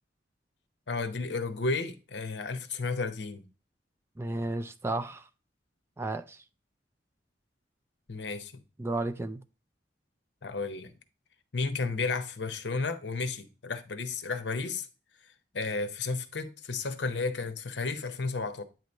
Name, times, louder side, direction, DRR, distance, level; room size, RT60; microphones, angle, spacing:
voice 1, 0.9-3.4 8.1-8.6 10.4-10.9 11.5-14.9 15.5-18.6, left 4 dB, 70° left, 0.8 m, -33 dB
voice 2, 4.2-5.2 6.0-6.4 8.8-9.4, right 2 dB, 15° right, 0.4 m, -33 dB
9.1 x 3.1 x 5.2 m
head